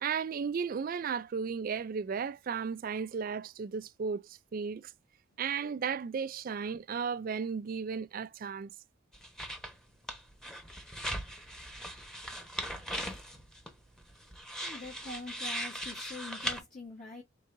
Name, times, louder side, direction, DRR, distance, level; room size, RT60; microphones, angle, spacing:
voice 1, 0.0-4.9 5.4-8.7, right 6 dB, 45° right, 0.4 m, -35 dB
sound 1, 9.1-9.7 10.0-16.6, equal, 5° left, 1.1 m, -39 dB
voice 2, 14.6-17.2, left 2 dB, 45° left, 1.5 m, -45 dB
5.3 x 3.8 x 2.6 m
head